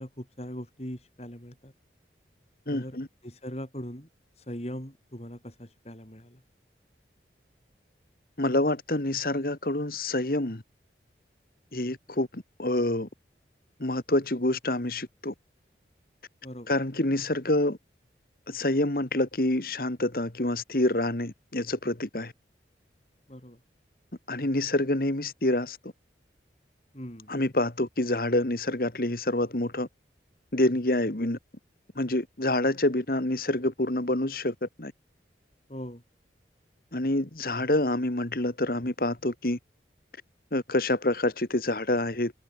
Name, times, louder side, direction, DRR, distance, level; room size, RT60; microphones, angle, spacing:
voice 1, 0.0-1.7 2.7-3.0 3.2-4.1 4.4-6.4 11.7-11.9 16.4-16.7 23.3-23.6 26.9-27.3 35.7-36.0, equal, 35° left, 8.0 m, -40 dB
voice 2, 2.7-3.1 8.4-10.6 11.7-13.1 13.8-15.3 16.7-17.8 18.5-22.3 24.3-25.8 27.3-29.9 30.5-31.4 32.0-34.9 36.9-39.6 40.5-42.3, left 1 dB, 55° left, 1.8 m, -27 dB
head